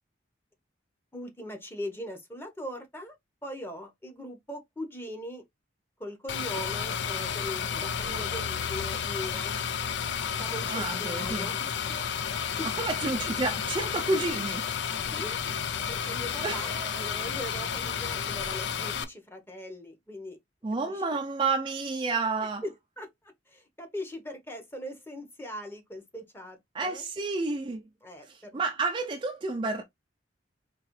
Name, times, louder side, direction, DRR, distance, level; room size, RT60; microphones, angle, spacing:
voice 1, 1.1-3.2 3.4-5.4 6.0-9.6 10.4-12.0 12.6-12.7 15.1-20.4 20.9-21.0 22.4-27.0 28.0-28.6, equal, 10° left, 0.9 m, -40 dB
sound 1, 6.3-19.0, left 7 dB, 70° left, 0.5 m, -32 dB
voice 2, 10.7-11.5 12.8-14.6 16.4-16.9 20.6-22.6 26.7-27.8 28.3-29.8, right 3 dB, 25° right, 0.4 m, -30 dB
3.8 x 2.9 x 3.0 m
head